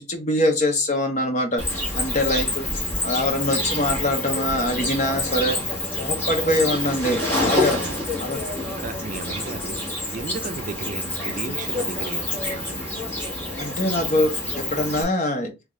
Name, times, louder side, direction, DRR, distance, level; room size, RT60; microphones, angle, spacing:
voice 1, 0.1-5.6 6.0-7.8 8.2-8.4 13.6-15.5, left 1 dB, 40° left, 0.9 m, -24 dB
Cricket, 1.6-15.0, left 1 dB, 10° left, 1.2 m, -27 dB
voice 2, 7.4-8.0 8.8-13.0, right 4 dB, 40° right, 0.3 m, -35 dB
3.4 x 2.5 x 3.1 m
head